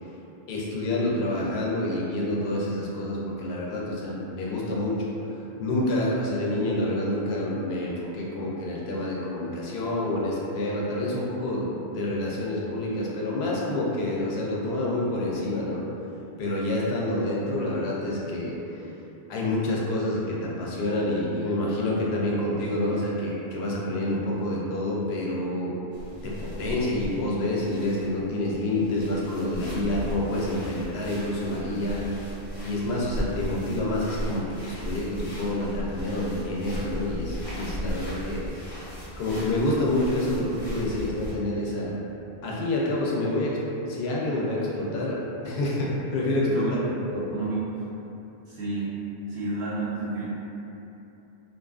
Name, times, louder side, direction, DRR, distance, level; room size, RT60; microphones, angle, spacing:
voice 1, 0.5-5.1 5.6-15.8 16.4-18.5 19.3-25.8 26.2-32.0 32.6-38.9 39.2-42.0 42.4-43.6 43.8-46.8 47.1-47.2, left 1 dB, 80° left, -4 dB, 0.8 m, -28 dB
sound 1, 25.9-41.3, equal, 50° left, 0.8 m, -37 dB
voice 2, 46.5-46.9 47.3-47.6 48.5-48.9 49.3-50.2, right 3 dB, 70° right, -11 dB, 0.8 m, -30 dB
2.6 x 2.4 x 2.3 m, 2.9 s
omnidirectional pair, 1.0 m